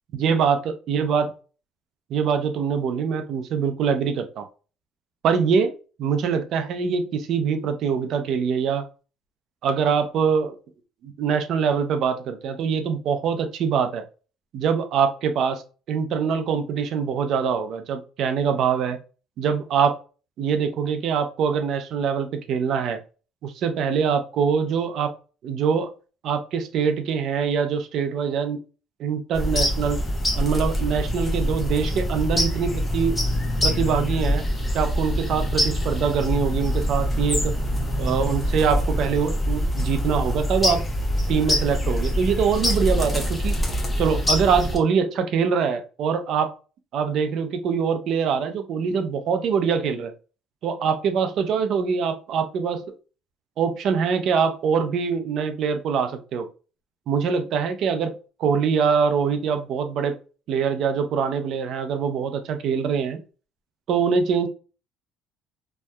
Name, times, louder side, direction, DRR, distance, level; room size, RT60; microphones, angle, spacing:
voice 1, 0.2-1.3 2.1-4.4 5.2-5.7 6.0-8.8 9.6-10.6 11.0-14.0 14.5-15.6 15.9-19.0 19.4-19.9 20.4-23.0 23.4-25.1 25.4-25.9 26.2-28.6 29.0-30.0 30.3-33.2 33.6-34.4 34.7-37.5 38.0-40.8 41.3-43.5 44.0-46.5 46.9-50.1 50.6-52.8 53.6-56.5 57.1-58.1 58.4-60.2 60.5-63.2 63.9-64.5, right 6 dB, 60° right, 8 dB, 0.4 m, -23 dB
sound 1, 29.3-44.8, equal, 15° left, 0.7 m, -24 dB
2.7 x 2.2 x 2.2 m, 0.35 s
supercardioid pair, 95°, 0 cm